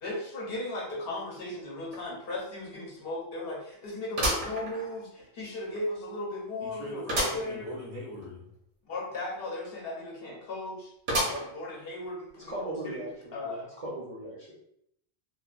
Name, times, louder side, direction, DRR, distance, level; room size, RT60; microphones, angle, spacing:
voice 1, 0.0-7.7 8.9-10.9 11.2-13.0 13.3-13.6, left 2 dB, 65° left, -2 dB, 0.9 m, -36 dB
sound 1, 1.9-2.0 2.5-2.6 4.2-5.3 5.8-5.9 7.1-7.5 7.9-8.0 8.2-8.3 11.1-11.7 12.3-12.4 13.4-13.5, equal, 70° right, 1.0 m, -30 dB
voice 2, 6.6-8.4, equal, 40° left, -7 dB, 0.4 m, -41 dB
voice 3, 12.3-14.5, right 1 dB, 45° right, -5 dB, 0.5 m, -38 dB
2.8 x 2.2 x 2.4 m, 0.74 s
omnidirectional pair, 1.1 m